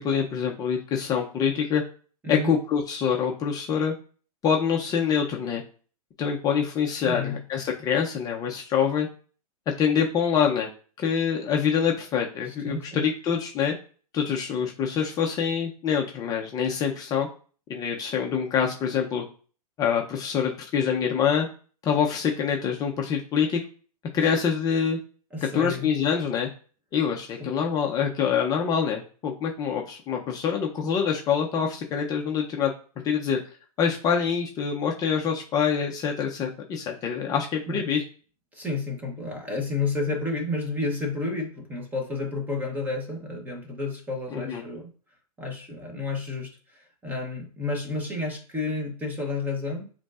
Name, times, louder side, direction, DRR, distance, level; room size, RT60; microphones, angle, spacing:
voice 1, 0.0-1.8 2.3-3.9 4.4-5.6 6.2-9.1 9.7-10.7 11.0-13.7 14.1-17.3 17.7-19.2 19.8-21.5 21.8-23.6 24.1-25.0 25.5-26.5 26.9-32.7 33.0-33.4 33.8-38.0 44.3-44.6, left 7 dB, 20° left, 1 dB, 0.5 m, -25 dB
voice 2, 7.0-7.4 12.5-13.0 25.3-25.9 27.4-27.5 37.7-37.9 38.5-44.9 45.4-49.9, left 3 dB, 10° right, 2 dB, 0.8 m, -31 dB
5.0 x 3.1 x 2.4 m, 0.41 s
hypercardioid pair, 145°, 20 cm